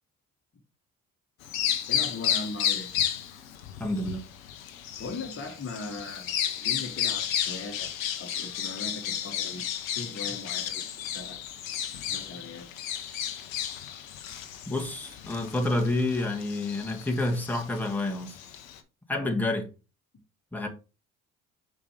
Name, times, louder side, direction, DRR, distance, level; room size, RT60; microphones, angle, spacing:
Bird vocalization bird call bird song, 1.4-18.8, left 10 dB, 85° left, 0.9 m, -33 dB
voice 1, 1.9-2.9 5.0-7.9 8.2-9.6 9.9-10.8 11.1-11.4 12.1-12.7 19.1-19.3, left 3 dB, 35° left, 1.5 m, -39 dB
voice 2, 3.8-4.2 14.7-18.4 19.1-19.7 20.5-20.7, left 2 dB, 5° left, 1.7 m, -29 dB
6.0 x 5.0 x 3.4 m
hypercardioid pair, 55°, 40 cm